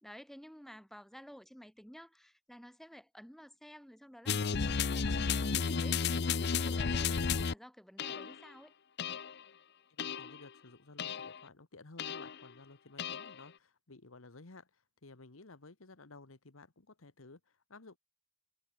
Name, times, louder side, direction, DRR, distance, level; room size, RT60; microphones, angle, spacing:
voice 1, 0.0-8.7, equal, ahead, 1.0 m, -53 dB
sound 1, 4.3-7.5 8.0-8.4 9.0-9.4 10.0-10.4 11.0-11.4 12.0-12.4 13.0-13.4, left 5 dB, 55° left, 0.7 m, -33 dB
voice 2, 9.9-18.0, left 3 dB, 80° left, 1.5 m, -55 dB
head